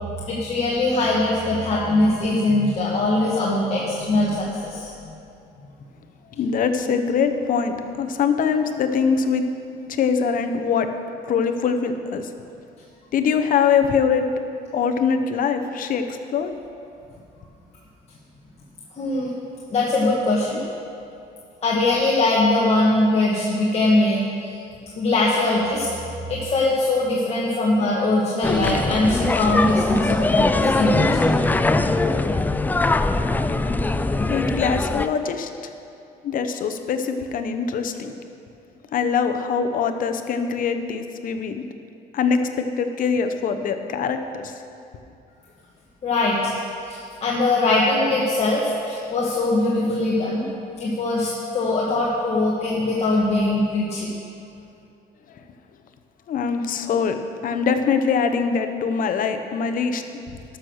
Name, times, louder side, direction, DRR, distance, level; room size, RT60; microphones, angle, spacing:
voice 1, 0.3-4.9 19.0-19.3 19.7-20.6 21.6-24.2 24.9-25.9 26.3-31.0 46.0-46.5 46.9-50.4 50.8-54.1, left 2 dB, 40° left, -5 dB, 1.6 m, -21 dB
voice 2, 6.3-9.4 9.9-10.9 11.3-12.3 13.1-14.3 14.7-16.5 34.3-35.5 36.2-38.1 38.9-41.6 42.1-44.5 56.3-57.2 57.4-60.0, left 6 dB, 55° left, 7 dB, 0.8 m, -23 dB
sound 1, 28.4-35.1, left 2 dB, 10° left, 0.3 m, -21 dB
12.0 x 6.4 x 6.3 m, 2.6 s
cardioid pair, 110°, 17 cm